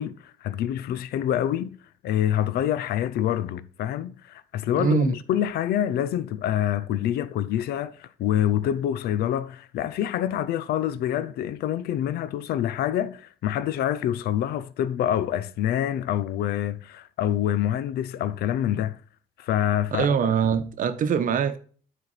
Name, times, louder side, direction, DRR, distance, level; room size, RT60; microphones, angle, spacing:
voice 1, 0.0-1.8 2.0-19.0 19.4-20.1, left 11 dB, 70° left, 0.6 m, -26 dB
voice 2, 4.7-5.1 19.9-21.6, right 7 dB, 50° right, 0.9 m, -23 dB
9.5 x 4.4 x 4.1 m
cardioid pair, 110°, 17 cm